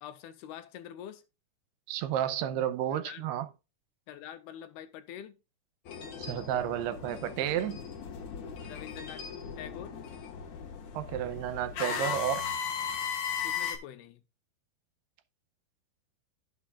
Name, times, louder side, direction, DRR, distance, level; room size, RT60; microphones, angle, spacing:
voice 1, 0.0-1.2 2.9-3.3 4.1-5.4 8.6-9.2 9.6-10.0 13.4-14.2, left 10 dB, 80° left, 2.5 m, -45 dB
voice 2, 1.9-3.5 6.2-7.8 10.9-12.5, right 11 dB, 80° right, 2.7 m, -31 dB
sound 1, 5.9-13.8, left 7 dB, 55° left, 2.2 m, -37 dB
17.0 x 6.3 x 2.4 m
omnidirectional pair, 4.8 m